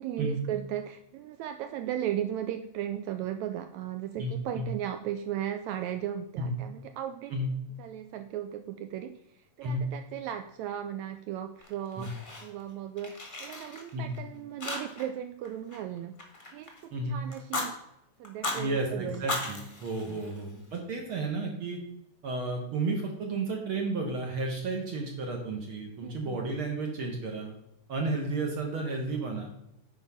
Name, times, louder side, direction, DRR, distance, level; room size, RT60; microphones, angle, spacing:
voice 1, 0.0-7.3 7.8-12.2 12.4-16.2 16.5-17.8 18.2-19.3 20.0-20.2 26.0-26.4, right 11 dB, 85° right, 8 dB, 1.6 m, -36 dB
voice 2, 4.2-4.7 6.4-6.5 7.3-7.5 9.6-9.9 12.0-12.1 13.9-14.1 16.9-17.2 18.5-21.8 22.2-27.5 27.9-29.5, right 2 dB, 60° right, 1 dB, 1.5 m, -32 dB
Fire, 11.6-12.7 13.0-14.2 14.6-15.2 15.4-16.8 17.3-17.7 18.2-18.6 19.1-20.7, left 2 dB, 35° left, 0.8 m, -37 dB
9.6 x 4.5 x 5.6 m, 0.82 s
omnidirectional pair, 3.7 m